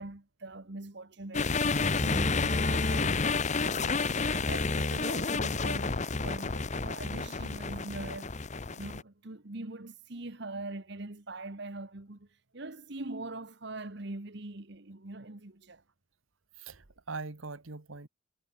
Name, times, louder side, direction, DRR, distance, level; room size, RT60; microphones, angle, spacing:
voice 1, 0.0-1.5 1.9-12.3 12.5-15.8, right 2 dB, 60° right, 1.5 m, -43 dB
sound 1, 1.3-9.0, left 4 dB, 35° left, 0.9 m, -30 dB
voice 2, 16.6-18.1, right 3 dB, 80° right, 1.5 m, -42 dB
head